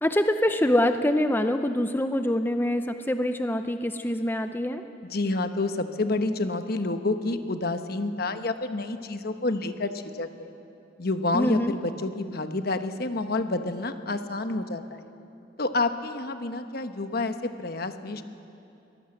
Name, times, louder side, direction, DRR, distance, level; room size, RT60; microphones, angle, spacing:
voice 1, 0.0-4.8 11.3-11.7, left 1 dB, 10° left, 7 dB, 0.6 m, -25 dB
voice 2, 5.1-10.5 11.0-15.1 15.6-18.2, left 2 dB, 55° left, 8 dB, 1.1 m, -29 dB
23.0 x 18.0 x 7.7 m, 2.7 s
head